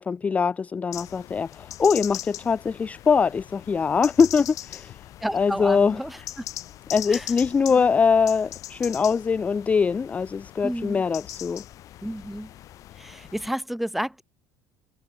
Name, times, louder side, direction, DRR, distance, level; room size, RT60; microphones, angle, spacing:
voice 1, 0.0-5.0 5.3-6.0 6.9-11.6, left 5 dB, 20° left, 0.5 m, -22 dB
sound 1, 0.9-13.5, left 13 dB, 55° left, 5.3 m, -40 dB
voice 2, 5.2-6.4 7.1-7.3 7.7-7.9 10.6-11.0 12.0-12.5 13.0-14.2, equal, ahead, 1.5 m, -31 dB
cardioid pair, 120°, 7 cm